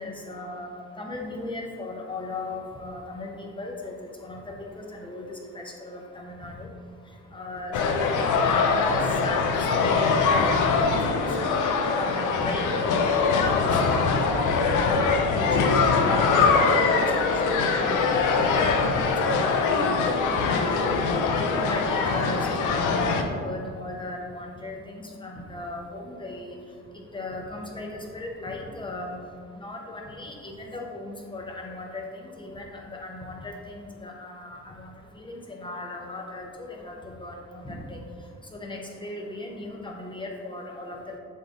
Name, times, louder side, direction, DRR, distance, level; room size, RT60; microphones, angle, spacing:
voice 1, 0.0-41.2, left 2 dB, 15° left, 0 dB, 1.1 m, -37 dB
sound 1, 7.7-23.2, left 4 dB, 85° left, 0.6 m, -23 dB
7.5 x 3.5 x 3.9 m, 2.2 s
cardioid pair, 90°, 30 cm